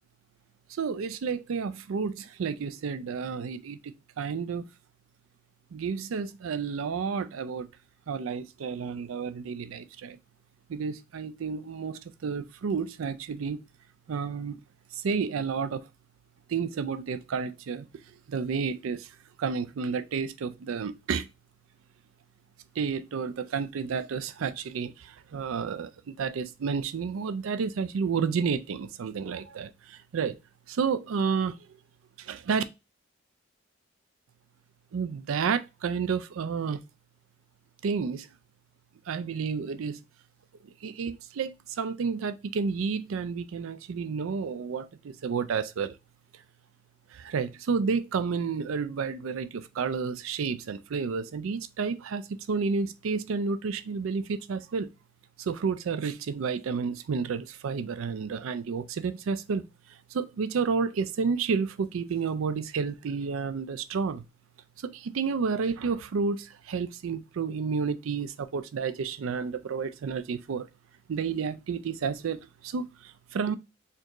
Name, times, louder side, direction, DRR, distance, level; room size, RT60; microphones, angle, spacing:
voice 1, 0.8-4.7 5.7-7.7 8.1-10.2 10.7-13.6 14.1-14.6 15.0-15.8 16.5-17.9 18.3-19.1 19.4-21.3 22.8-30.4 30.7-31.6 32.2-32.6 34.9-36.8 37.8-38.3 39.1-40.0 40.8-46.0 47.1-54.9 55.4-59.6 60.1-64.2 64.8-70.7 71.1-73.6, right 5 dB, 80° right, 0.4 m, -31 dB
4.3 x 2.5 x 3.0 m
head